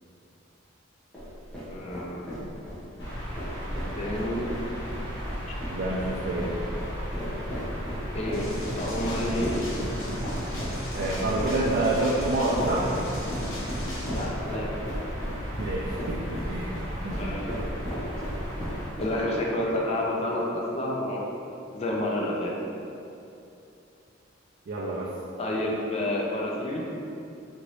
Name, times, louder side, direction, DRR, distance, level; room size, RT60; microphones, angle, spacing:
sound 1, 1.1-19.4, equal, 5° left, 0.9 m, -37 dB
voice 1, 1.7-2.2 3.7-4.5 8.1-9.6 14.1-14.7 17.0-17.7 19.0-21.3 21.7-22.5 25.4-26.9, left 1 dB, 30° left, -3 dB, 0.4 m, -30 dB
sound 2, 3.0-18.9, equal, 65° left, 1.2 m, -35 dB
voice 2, 5.7-6.6 10.9-12.9 15.5-16.8 17.0-17.2 24.7-25.1, right 2 dB, 50° right, -6 dB, 0.3 m, -28 dB
sound 3, 8.3-14.2, equal, 85° left, 0.7 m, -37 dB
2.9 x 2.6 x 3.0 m, 2.7 s
head